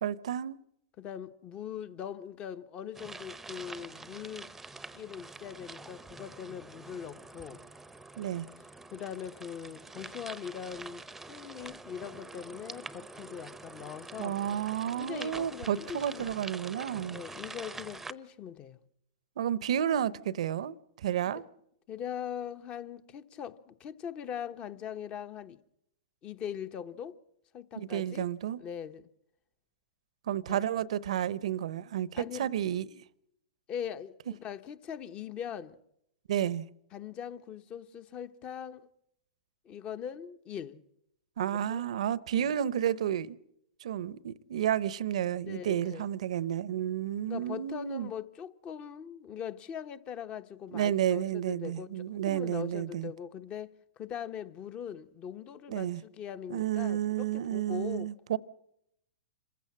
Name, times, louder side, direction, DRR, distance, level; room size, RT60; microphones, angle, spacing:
voice 1, 0.0-0.6 8.2-8.5 14.2-17.2 19.4-21.4 27.8-28.6 30.3-33.0 36.3-36.7 41.4-43.4 43.8-48.1 50.7-53.1 55.7-56.0 56.5-58.4, right 10 dB, 70° right, 0.8 m, -31 dB
voice 2, 1.0-4.5 4.9-7.6 8.9-14.4 15.0-16.3 17.1-18.8 21.3-21.5 21.9-25.6 26.2-27.2 27.5-28.3 28.6-29.1 30.5-30.6 32.1-32.5 33.7-35.8 36.9-38.9 39.6-40.8 41.4-41.8 42.3-42.5 45.4-46.1 47.3-51.9 52.3-58.1, left 8 dB, 30° left, 1.1 m, -41 dB
sound 1, 2.9-18.1, right 3 dB, 5° right, 0.8 m, -46 dB
27.0 x 15.5 x 7.5 m
hypercardioid pair, 120°, 4 cm